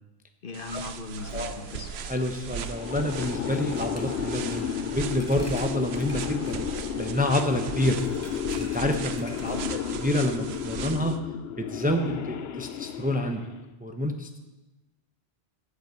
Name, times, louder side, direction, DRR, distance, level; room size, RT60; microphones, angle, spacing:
voice 1, 0.4-1.9 9.4-9.8, left 2 dB, 60° left, 6 dB, 1.2 m, -38 dB
Walking on carpet, 0.5-11.2, right 8 dB, 90° right, 0.9 m, -38 dB
Coin (dropping), 1.2-10.3, left 1 dB, 15° left, 1.4 m, -46 dB
voice 2, 2.0-8.0 8.6-9.6 10.0-11.2 11.6-13.4 13.8-14.4, left 1 dB, 10° right, 5 dB, 0.6 m, -28 dB
sound 1, 2.6-13.7, left 9 dB, 80° left, 0.8 m, -33 dB
12.0 x 5.3 x 8.1 m, 1.1 s
omnidirectional pair, 1.1 m